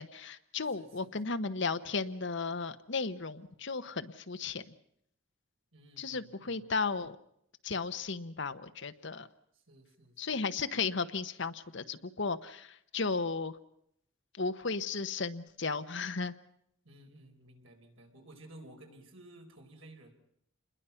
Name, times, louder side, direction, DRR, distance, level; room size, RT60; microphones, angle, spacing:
voice 1, 0.0-4.6 6.0-7.2 7.6-9.3 10.2-13.6 14.3-16.3, left 4 dB, 60° left, 11 dB, 1.1 m, -35 dB
voice 2, 0.8-1.1 5.7-6.6 9.5-10.4 16.8-20.1, right 1 dB, 75° right, 2 dB, 4.5 m, -55 dB
28.5 x 21.0 x 5.8 m, 0.72 s
head